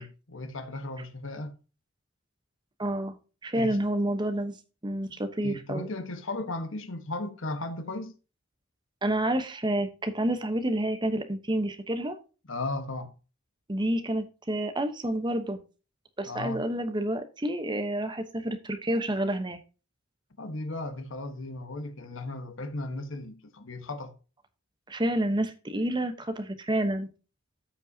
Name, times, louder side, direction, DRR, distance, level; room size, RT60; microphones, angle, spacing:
voice 1, 0.0-1.6 3.6-3.8 5.1-8.1 12.5-13.1 16.3-16.7 20.4-24.1, left 2 dB, 65° left, 1.2 m, -36 dB
voice 2, 2.8-4.6 4.8-5.9 9.0-12.2 13.7-15.6 16.2-19.6 24.9-27.1, right 1 dB, 20° right, 0.9 m, -29 dB
14.0 x 5.3 x 2.8 m
head